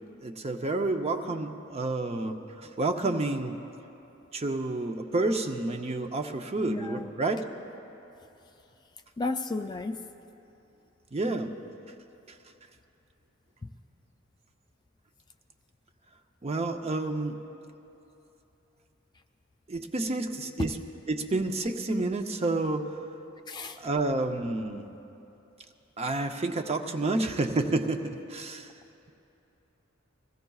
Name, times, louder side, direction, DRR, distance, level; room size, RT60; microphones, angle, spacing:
voice 1, 0.2-3.5 4.3-7.4 11.1-11.5 16.4-17.4 19.7-20.7 21.1-22.8 23.8-24.9 26.0-28.7, right 2 dB, 30° right, 5 dB, 0.6 m, -29 dB
voice 2, 6.6-7.1 9.2-10.0 13.6-13.7 23.5-23.8, left 3 dB, 20° left, 6 dB, 0.4 m, -33 dB
21.5 x 16.0 x 2.3 m, 2.9 s
head